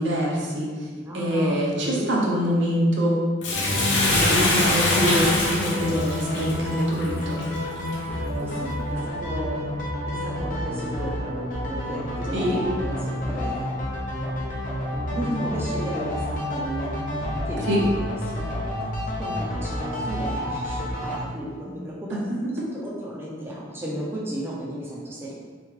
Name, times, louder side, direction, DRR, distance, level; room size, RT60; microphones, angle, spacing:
voice 1, 0.0-0.9 1.1-3.1 4.1-7.5 12.3-12.6 17.7-17.8, equal, 70° right, -4 dB, 0.9 m, -25 dB
voice 2, 0.9-1.6 1.8-2.5 4.0-4.5 8.4-9.8 10.1-13.7 15.1-17.0 17.5-17.6 18.3-18.5 19.2-22.2 22.7-25.3, right 1 dB, 10° right, -6 dB, 0.6 m, -33 dB
Bathtub (filling or washing), 3.4-7.9 8.5-8.6, left 2 dB, 65° left, 0.9 m, -24 dB
sound 1, 3.5-21.2, left 1 dB, 45° left, 0.7 m, -29 dB
3.8 x 3.1 x 3.6 m, 1.5 s
head